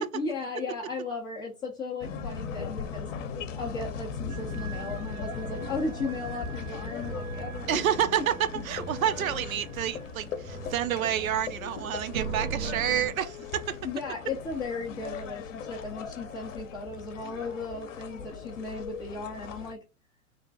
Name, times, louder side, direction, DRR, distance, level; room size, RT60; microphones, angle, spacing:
voice 1, 0.0-3.1 3.6-7.8 13.8-19.8, left 3 dB, 10° left, 0.3 m, -36 dB
sound 1, 2.0-19.7, left 6 dB, 60° left, 0.7 m, -39 dB
sound 2, 4.3-13.1, right 3 dB, 85° right, 1.5 m, -40 dB
voice 2, 7.7-8.3 8.7-13.8, right 10 dB, 70° right, 0.6 m, -29 dB
3.3 x 2.2 x 3.9 m
figure-of-eight pair, 105°, 43 cm